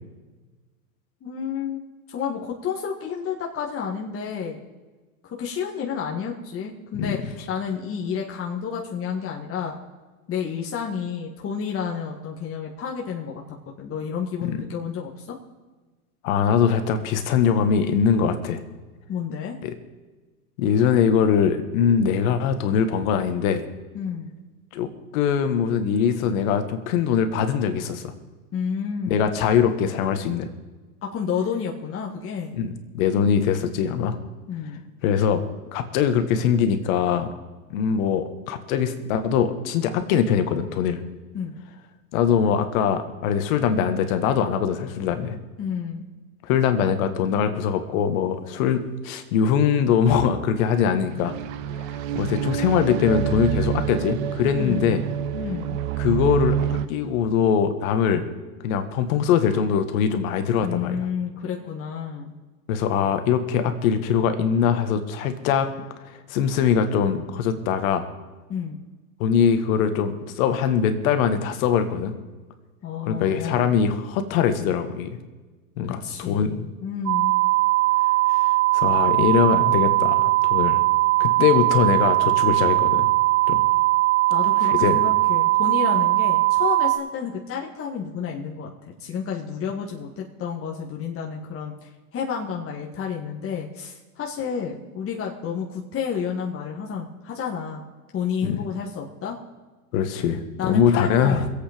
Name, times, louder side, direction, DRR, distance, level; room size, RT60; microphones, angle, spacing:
voice 1, 1.2-1.8 2.1-4.7 5.2-9.8 10.3-15.4 19.1-19.6 23.9-24.4 28.5-29.3 31.0-32.6 34.5-34.8 41.3-41.5 45.6-46.0 54.6-55.0 55.3-55.8 60.6-62.4 68.5-68.8 72.8-73.7 75.9-77.4 84.3-97.8 98.1-99.4 100.6-101.5, left 7 dB, 30° left, -2 dB, 1.9 m, -30 dB
voice 2, 7.0-7.3 14.4-14.6 16.2-18.6 19.6-19.7 20.6-23.7 24.7-28.1 29.1-30.5 32.5-32.7 32.9-34.2 35.0-37.3 37.7-41.0 42.1-45.4 46.4-51.4 52.1-55.0 56.0-56.6 56.9-58.2 58.6-61.1 62.7-65.7 66.0-68.1 69.2-72.1 73.1-75.1 75.8-76.6 78.3-78.4 78.7-80.8 81.2-83.1 83.5-83.6 84.6-85.0 98.4-98.6 99.9-101.4, left 7 dB, 65° left, 8 dB, 1.8 m, -22 dB
sound 1, 50.8-56.9, right 10 dB, 60° right, 1.1 m, -27 dB
sound 2, 77.1-87.0, right 19 dB, 80° right, 1.3 m, -20 dB
21.5 x 8.4 x 5.2 m, 1.3 s
hypercardioid pair, 105°, 45 cm